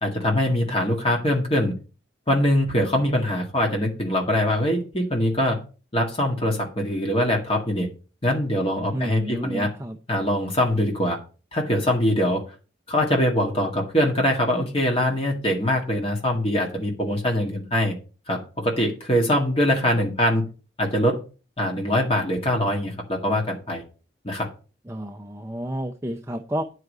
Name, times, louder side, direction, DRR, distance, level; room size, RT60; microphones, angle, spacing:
voice 1, 0.0-1.7 2.3-5.6 5.9-7.9 8.2-9.7 10.1-11.2 11.5-12.4 12.9-18.0 18.3-20.4 20.8-21.2 21.6-23.8 24.2-24.5, left 1 dB, 30° left, 0 dB, 1.9 m, -23 dB
voice 2, 8.9-10.0 24.9-26.6, right 1 dB, 15° right, 4 dB, 0.5 m, -30 dB
9.5 x 4.9 x 6.6 m, 0.35 s
head